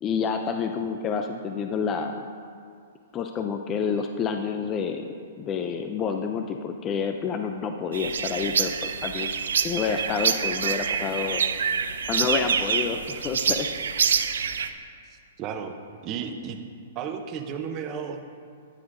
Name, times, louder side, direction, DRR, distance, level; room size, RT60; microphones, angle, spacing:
voice 1, 0.0-2.3 3.1-5.1 5.4-11.4 12.1-13.7, left 6 dB, 20° left, 5 dB, 0.3 m, -29 dB
sound 1, 7.9-14.7, right 7 dB, 80° right, 0.4 m, -26 dB
voice 2, 15.1-15.7 16.0-16.6 17.0-18.3, right 7 dB, 25° right, 6 dB, 0.6 m, -33 dB
9.8 x 9.3 x 2.6 m, 2.2 s
hypercardioid pair, 150°, 0 cm